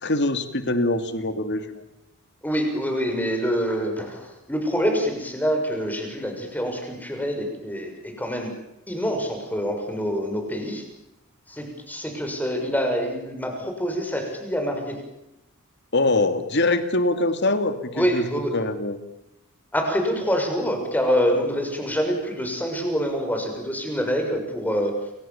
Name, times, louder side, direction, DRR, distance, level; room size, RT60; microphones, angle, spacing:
voice 1, 0.0-1.8 15.9-19.0, left 2 dB, 55° left, 9 dB, 2.6 m, -23 dB
voice 2, 2.4-8.5 8.9-10.8 11.5-15.0 17.9-18.5 19.7-24.9, equal, 10° left, 3 dB, 6.5 m, -26 dB
29.5 x 25.5 x 7.3 m, 0.89 s
head